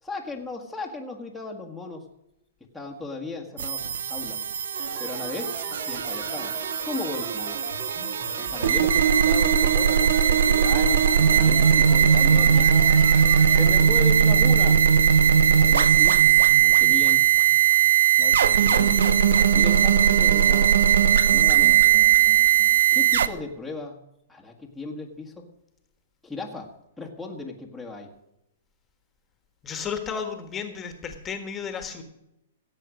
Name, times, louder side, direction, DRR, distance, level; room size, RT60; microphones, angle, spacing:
voice 1, 0.0-2.1 2.7-4.4 4.9-7.6 8.4-12.8 13.5-14.8 15.5-16.2 16.6-17.3 18.2-19.0 19.5-20.7 21.3-21.9 22.9-24.0 24.3-25.5 26.2-26.7 27.0-28.1, left 3 dB, ahead, -3 dB, 1.5 m, -36 dB
sound 1, 3.6-23.3, right 8 dB, 80° right, 0.8 m, -19 dB
sound 2, 4.7-13.7, right 5 dB, 45° right, 2.5 m, -38 dB
voice 2, 29.6-32.0, left 6 dB, 20° left, 7 dB, 1.6 m, -33 dB
16.0 x 7.8 x 6.3 m, 0.86 s
hypercardioid pair, 145°, 0 cm